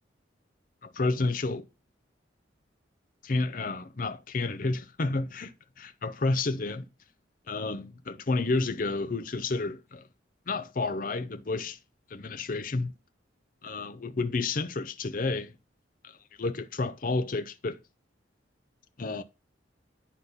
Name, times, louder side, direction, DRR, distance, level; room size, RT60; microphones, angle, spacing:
voice 1, 0.8-1.6 3.2-6.9 7.5-10.1 10.5-11.8 12.1-12.9 13.6-15.5 16.0-17.8 19.0-19.2, left 3 dB, 45° left, 0.6 m, -30 dB
9.5 x 4.1 x 5.5 m
head